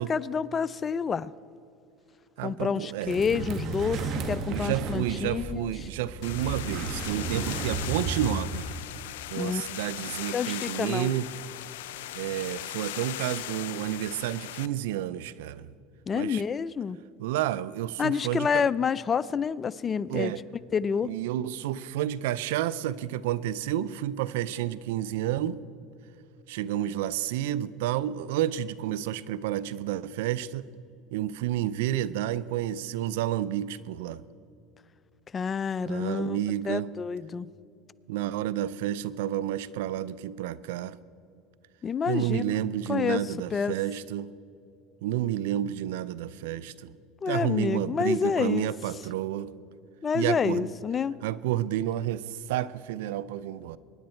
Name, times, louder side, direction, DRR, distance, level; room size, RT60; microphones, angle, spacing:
voice 1, 0.0-1.3 2.4-5.7 9.4-9.6 10.0-11.1 16.1-17.0 18.0-20.3 20.7-21.1 35.3-36.4 36.6-37.5 41.8-42.6 42.9-43.7 47.2-48.7 50.0-51.1, left 6 dB, 30° left, 19 dB, 0.4 m, -28 dB
voice 2, 2.4-3.2 4.5-8.6 9.3-11.3 12.1-15.7 16.1-16.4 17.2-18.7 20.1-20.4 21.0-25.6 26.5-30.7 31.1-34.2 35.9-36.9 38.1-41.0 42.1-44.3 45.0-46.9 47.3-49.5 50.1-50.7 51.2-53.8, right 12 dB, 80° right, 18 dB, 0.5 m, -30 dB
sound 1, 3.1-8.8, right 4 dB, 55° right, 1.7 m, -34 dB
sound 2, 6.2-14.7, left 14 dB, 85° left, 0.5 m, -38 dB
23.5 x 10.5 x 4.4 m, 2.7 s
supercardioid pair, 100°, 0 cm